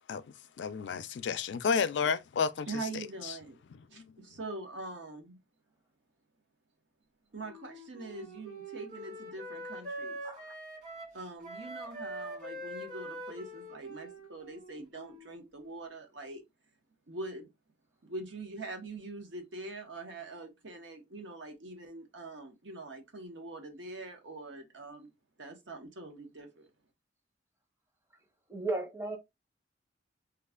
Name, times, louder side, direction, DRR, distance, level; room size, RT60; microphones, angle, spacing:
voice 1, 0.6-2.7 3.2-3.3 3.9-4.1, left 6 dB, 70° left, 0.4 m, -31 dB
voice 2, 2.7-3.6 3.9-5.4 7.3-10.2 10.5-10.6 11.1-16.4 17.1-17.5 18.0-25.1 25.4-26.7, right 2 dB, 80° right, 1.0 m, -43 dB
Wind instrument woodwind instrument, 7.4-15.4, right 1 dB, 45° right, 2.0 m, -44 dB
voice 3, 28.5-29.2, right 2 dB, 15° right, 0.6 m, -34 dB
3.1 x 2.4 x 3.6 m
head